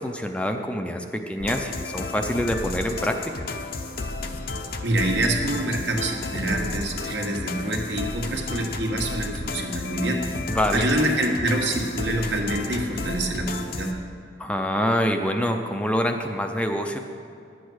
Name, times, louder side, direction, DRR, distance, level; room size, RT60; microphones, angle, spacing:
voice 1, 0.0-3.2 10.5-10.9 14.4-17.0, equal, 5° left, 4 dB, 0.5 m, -25 dB
sound 1, 1.4-13.9, left 3 dB, 55° left, 0.7 m, -32 dB
voice 2, 4.8-10.2 10.7-13.9, right 1 dB, 75° right, 1 dB, 1.5 m, -26 dB
11.0 x 8.4 x 6.3 m, 2.4 s
head